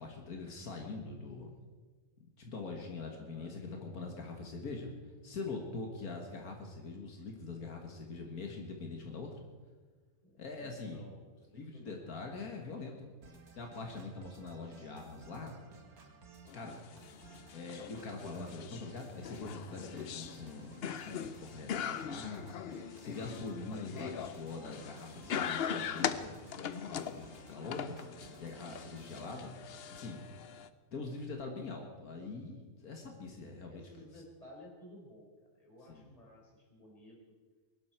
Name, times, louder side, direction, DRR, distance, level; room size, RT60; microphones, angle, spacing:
voice 1, 0.0-1.5 2.4-4.9 5.2-9.4 10.4-11.0 11.5-13.1 13.5-15.6 16.5-16.8 17.5-26.4 26.9-28.0 28.4-29.6 29.9-30.2 30.9-33.8 35.9-36.1, left 3 dB, 80° left, 2 dB, 2.1 m, -43 dB
voice 2, 3.1-3.5 10.2-11.2 11.5-12.0 33.7-35.3 35.6-37.3, left 1 dB, 25° left, -2 dB, 4.1 m, -55 dB
sound 1, 13.2-29.2, right 4 dB, 80° right, 2.1 m, -57 dB
sound 2, 16.5-30.7, left 8 dB, 55° left, 0.7 m, -41 dB
22.5 x 12.0 x 4.5 m, 1.4 s
omnidirectional pair, 1.5 m